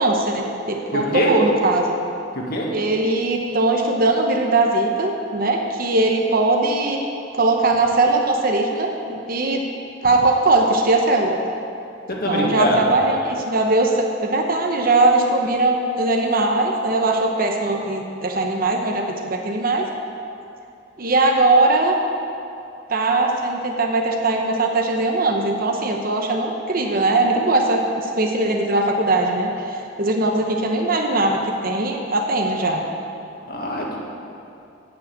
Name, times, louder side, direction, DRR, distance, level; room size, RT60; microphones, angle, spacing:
voice 1, 0.0-2.0 2.7-7.0 7.3-9.6 10.0-11.4 12.3-19.9 21.0-22.0 22.9-29.5 30.0-32.8, right 2 dB, 50° right, 2 dB, 0.9 m, -20 dB
voice 2, 0.9-1.4 2.4-2.7 12.1-12.8 33.5-34.0, left 1 dB, 50° left, -2 dB, 1.9 m, -23 dB
8.9 x 7.6 x 8.7 m, 2.6 s
head